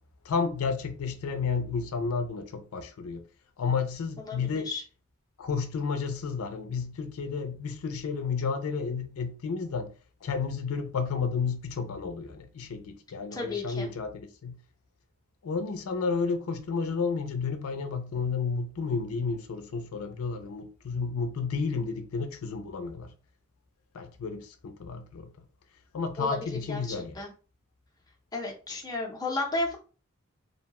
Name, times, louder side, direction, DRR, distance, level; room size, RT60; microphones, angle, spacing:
voice 1, 0.3-3.2 3.6-4.7 5.4-9.9 10.2-14.6 15.4-23.1 23.9-25.3 25.9-27.1, left 5 dB, 85° left, 0.4 m, -31 dB
voice 2, 4.2-4.8 13.3-13.9 26.2-27.3 28.3-29.8, left 2 dB, 20° left, 0.6 m, -33 dB
2.7 x 2.1 x 2.8 m
head